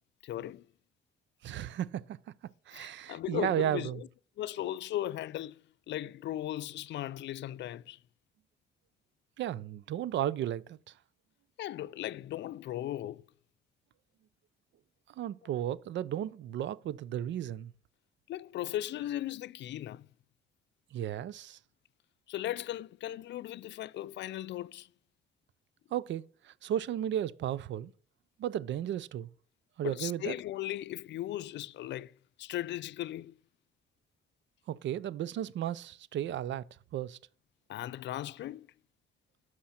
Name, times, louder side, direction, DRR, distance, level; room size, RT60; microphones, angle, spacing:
voice 1, 0.2-0.7 2.7-4.1 4.4-5.6 5.9-8.0 11.6-13.2 18.3-20.1 22.3-24.9 29.8-33.4 37.7-38.7, left 13 dB, 65° left, 0.4 m, -37 dB
voice 2, 1.4-2.2 2.7-4.0 9.4-10.9 15.2-17.7 20.9-21.6 25.9-27.9 28.4-29.3 29.8-30.3 34.7-36.7 36.9-37.2, right 11 dB, 70° right, 0.5 m, -34 dB
11.5 x 6.4 x 4.3 m
cardioid pair, 90°, 20 cm